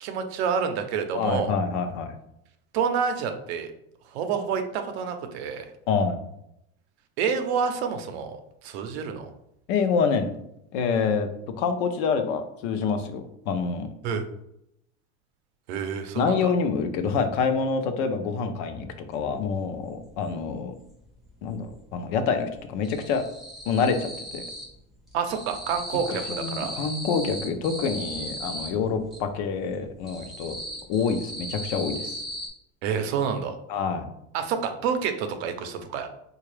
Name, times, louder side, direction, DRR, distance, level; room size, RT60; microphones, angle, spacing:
voice 1, 0.0-1.6 2.7-3.7 4.1-5.7 7.2-9.3 14.0-14.2 15.7-16.5 25.1-26.7 32.8-33.6 34.3-36.1, right 6 dB, 75° right, 7 dB, 0.6 m, -28 dB
voice 2, 1.1-2.1 5.9-6.2 9.7-10.3 10.7-11.3 11.6-13.9 16.2-20.7 21.4-23.2 23.7-24.4 26.1-30.6 30.9-32.1 33.7-34.1, left 5 dB, 55° left, 8 dB, 0.5 m, -26 dB
sound 1, 19.2-19.3 19.6-20.9 21.2-21.9 22.1-24.8 25.1-29.2 29.7-32.5, equal, ahead, 0.6 m, -37 dB
3.7 x 2.3 x 3.2 m, 0.78 s
supercardioid pair, 165°, 32 cm